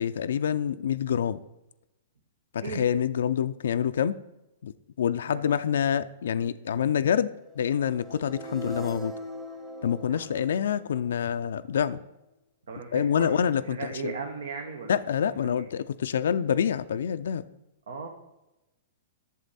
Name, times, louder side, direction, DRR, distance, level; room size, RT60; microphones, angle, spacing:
voice 1, 0.0-1.4 2.5-4.2 4.6-4.7 5.0-9.1 9.8-12.0 12.9-14.1 14.9-17.4, left 8 dB, 75° left, 11 dB, 0.3 m, -27 dB
voice 2, 5.3-5.6 10.1-10.4 12.7-15.0 15.3-15.7 17.9-18.1, right 5 dB, 80° right, 4 dB, 1.0 m, -37 dB
sound 1, 7.7-11.8, equal, 10° right, 1.1 m, -41 dB
8.2 x 6.9 x 4.1 m, 0.97 s
hypercardioid pair, 125°, 0 cm